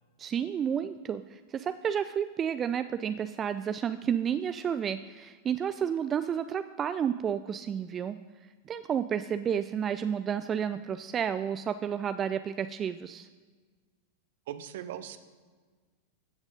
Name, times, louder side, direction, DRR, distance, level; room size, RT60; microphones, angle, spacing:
voice 1, 0.2-8.2 8.7-13.3, right 8 dB, 25° right, 11 dB, 0.4 m, -31 dB
voice 2, 14.5-15.2, right 10 dB, 55° right, 12 dB, 0.8 m, -39 dB
15.5 x 7.2 x 5.2 m, 1.4 s
figure-of-eight pair, 90°, 0 cm